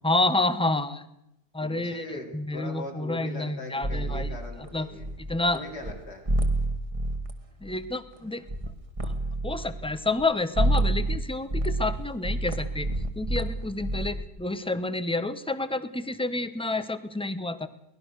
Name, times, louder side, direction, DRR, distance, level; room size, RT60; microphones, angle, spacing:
voice 1, 0.0-1.1 1.5-4.4 4.7-4.9 5.3-5.6 7.6-8.4 9.0-9.1 9.4-12.9 13.2-17.7, left 2 dB, 5° left, 12 dB, 0.7 m, -29 dB
voice 2, 1.6-5.1 5.5-6.2, left 2 dB, 70° left, 1 dB, 4.5 m, -40 dB
sound 1, 3.8-5.6 5.8-5.9 6.3-7.3 7.6-8.2 8.5-8.7 9.0-10.2 10.6-11.2 11.5-14.2, right 1 dB, 20° right, 1.6 m, -28 dB
23.5 x 19.0 x 6.6 m, 0.84 s
omnidirectional pair, 1.8 m